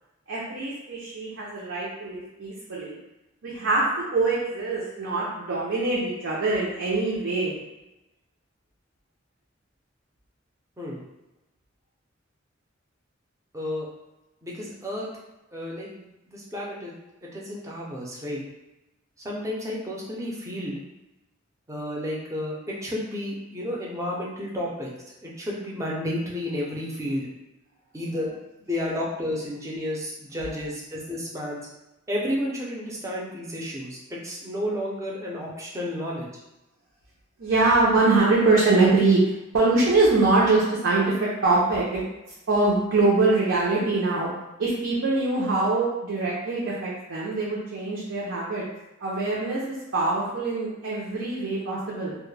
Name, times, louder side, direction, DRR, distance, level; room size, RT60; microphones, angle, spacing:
voice 1, 0.3-3.0 3.4-7.5 37.4-39.2 39.5-42.0 42.5-44.3 44.6-48.6 49.0-49.6 49.9-52.2, right 3 dB, 75° right, -6 dB, 0.5 m, -23 dB
voice 2, 13.5-13.9 14.4-15.1 15.5-16.9 17.2-18.4 19.2-20.8 21.7-24.9 25.2-27.3 27.9-28.3 28.6-31.6 32.1-36.3, left 1 dB, 15° right, -4 dB, 0.5 m, -31 dB
2.2 x 2.0 x 3.1 m, 0.97 s
head